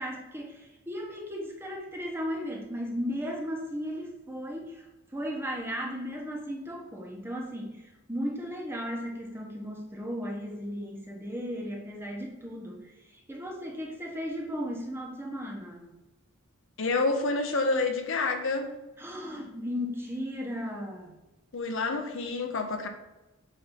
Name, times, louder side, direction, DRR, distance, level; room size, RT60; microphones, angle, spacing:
voice 1, 0.0-4.9 5.1-15.9 19.0-21.1, equal, 10° right, 1.1 m, -36 dB
voice 2, 16.8-18.7 21.5-22.9, left 3 dB, 60° left, 0.7 m, -28 dB
8.1 x 2.9 x 5.5 m
head